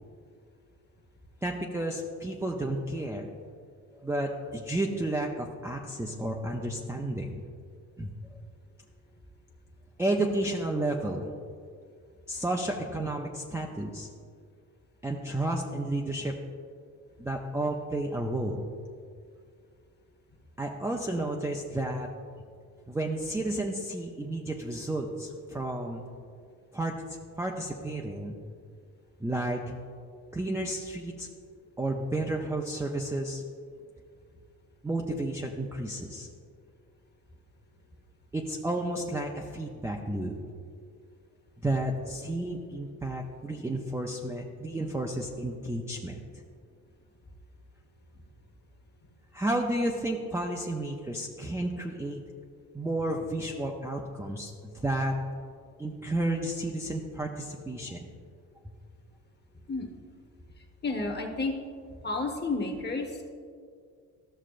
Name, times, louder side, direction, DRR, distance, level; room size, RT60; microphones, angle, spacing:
voice 1, 1.4-3.3 4.0-7.4 8.0-8.4 10.0-11.3 12.3-14.1 15.0-16.3 17.2-18.7 20.6-22.1 22.9-26.1 26.7-27.0 27.4-28.4 29.2-29.7 30.3-31.3 31.8-33.4 34.8-36.3 38.3-40.4 41.6-46.2 49.3-52.2 52.7-55.1 55.8-58.0, right 1 dB, 5° right, 0 dB, 0.4 m, -32 dB
voice 2, 60.8-61.5 62.0-63.3, left 3 dB, 25° left, 1 dB, 1.2 m, -31 dB
13.5 x 6.2 x 2.5 m, 2.1 s
cardioid pair, 110°, 39 cm